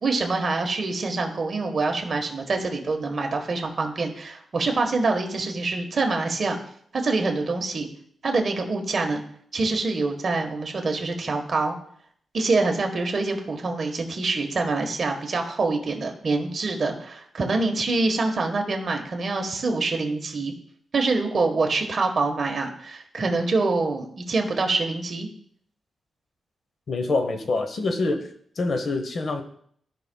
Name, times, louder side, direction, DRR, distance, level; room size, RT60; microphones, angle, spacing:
voice 1, 0.0-6.6 6.9-7.9 8.2-9.2 9.5-11.8 12.3-20.5 20.9-25.3, right 3 dB, 45° right, 3 dB, 1.3 m, -25 dB
voice 2, 26.9-28.3 28.6-29.4, left 3 dB, 55° left, 7 dB, 1.0 m, -25 dB
14.0 x 5.5 x 2.3 m, 0.63 s
wide cardioid pair, 120°, 0 cm